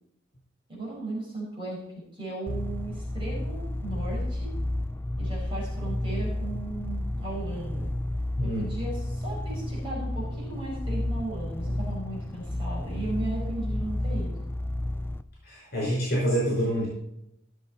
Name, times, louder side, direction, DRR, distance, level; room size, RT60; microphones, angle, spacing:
voice 1, 0.7-1.8 2.1-4.5 5.2-7.9 8.4-14.3, right 2 dB, 25° right, -5 dB, 5.2 m, -36 dB
sound 1, 2.5-15.2, left 1 dB, 10° left, 0.4 m, -31 dB
voice 2, 15.4-16.9, equal, 55° left, -5 dB, 5.5 m, -26 dB
16.0 x 7.2 x 4.3 m, 0.78 s
head